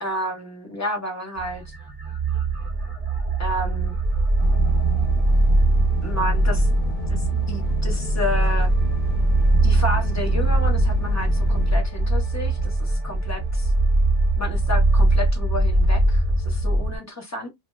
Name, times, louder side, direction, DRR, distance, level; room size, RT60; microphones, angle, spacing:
voice 1, 0.0-1.7 3.4-3.9 6.0-6.7 7.1-8.7 9.6-13.7 14.4-17.5, left 1 dB, 15° left, 0.5 m, -31 dB
sound 1, 1.4-17.0, right 2 dB, 35° right, 0.6 m, -21 dB
sound 2, 4.4-11.8, left 3 dB, 85° left, 1.2 m, -34 dB
2.8 x 2.1 x 3.1 m
omnidirectional pair, 1.7 m